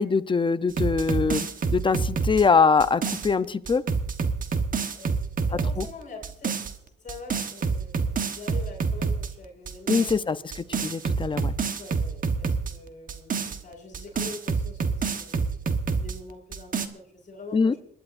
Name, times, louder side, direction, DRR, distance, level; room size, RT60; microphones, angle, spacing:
voice 1, 0.0-3.8 5.8-5.9 9.9-11.5 17.5-17.7, left 5 dB, 25° left, 12 dB, 0.7 m, -23 dB
sound 1, 0.7-3.3 3.7-5.9 6.2-6.7 7.1-9.3 9.7-10.2 10.5-12.7 13.1-16.2 16.5-16.9, right 5 dB, 45° right, 1.3 m, -27 dB
voice 2, 4.9-11.0 11.8-15.6 16.0-17.8, left 3 dB, 40° left, -1 dB, 7.6 m, -44 dB
28.0 x 11.0 x 2.6 m, 0.68 s
cardioid pair, 90°, 20 cm